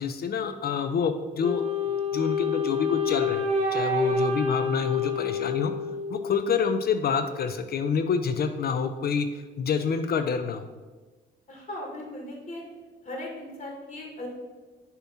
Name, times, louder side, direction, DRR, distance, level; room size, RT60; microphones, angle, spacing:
voice 1, 0.0-1.6 2.1-5.7 6.1-10.6, left 6 dB, 50° left, 8 dB, 0.5 m, -27 dB
Wind instrument woodwind instrument, 1.4-6.5, left 3 dB, 35° right, 1.2 m, -28 dB
voice 2, 11.5-12.6 13.0-14.3, left 1 dB, 35° left, 0 dB, 1.7 m, -38 dB
6.8 x 3.0 x 5.6 m, 1.3 s
cardioid pair, 90°, 20 cm